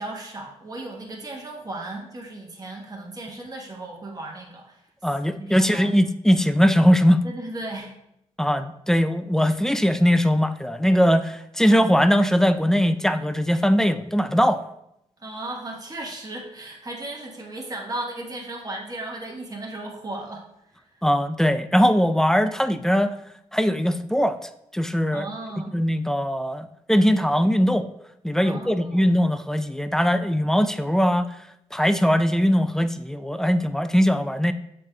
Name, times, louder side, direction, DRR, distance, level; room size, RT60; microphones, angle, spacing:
voice 1, 0.0-4.8 5.4-5.9 7.2-7.9 15.2-20.4 20.9-21.0 25.1-25.8 28.4-29.1, right 2 dB, 30° right, -1 dB, 1.1 m, -35 dB
voice 2, 5.0-7.3 8.4-14.6 21.0-23.2 23.5-24.4 24.7-25.3 25.7-27.9 28.2-31.4 31.7-34.5, equal, 5° left, 10 dB, 0.3 m, -20 dB
7.2 x 3.2 x 2.2 m, 0.80 s
supercardioid pair, 55°, 13 cm